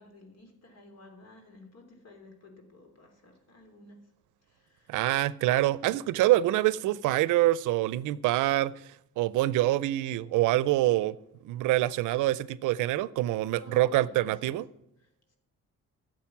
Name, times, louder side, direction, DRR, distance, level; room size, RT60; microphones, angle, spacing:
voice 1, 0.0-4.1 4.4-5.1 13.6-14.5 15.0-15.4, left 1 dB, 55° left, 3.2 m, -53 dB
voice 2, 4.9-8.7 9.2-11.1 11.4-14.7, right 15 dB, 90° right, 0.5 m, -25 dB
12.0 x 7.5 x 5.9 m
cardioid pair, 90°, 30 cm